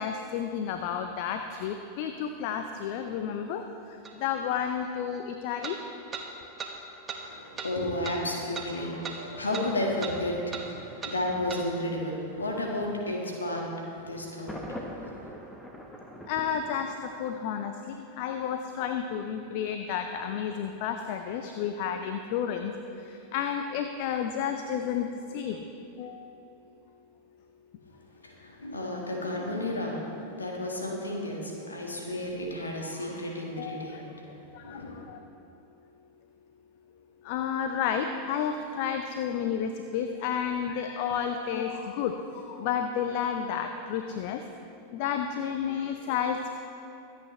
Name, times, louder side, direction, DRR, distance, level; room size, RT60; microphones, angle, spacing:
voice 1, 0.0-5.8 16.3-22.7 23.0-25.6 26.0-26.4 33.6-34.0 34.5-35.2 37.2-44.4 44.9-46.6, left 8 dB, 45° left, 7 dB, 0.6 m, -31 dB
sound 1, 4.1-4.2 5.6-5.8 6.1-6.3 6.6-6.7 7.1-7.2 7.6-7.7 8.0-8.2 8.6-8.7 9.0-9.2 9.5-9.7 10.0-10.2 10.5-10.7 11.0-11.2 11.5-11.6, right 5 dB, 20° right, 1.3 m, -37 dB
voice 2, 7.2-15.2 28.2-35.1, left 1 dB, 75° left, -1 dB, 2.0 m, -33 dB
Thunder, 14.5-17.5, equal, 5° left, 1.2 m, -42 dB
24.0 x 8.4 x 3.3 m, 2.9 s
figure-of-eight pair, 90°, 0 cm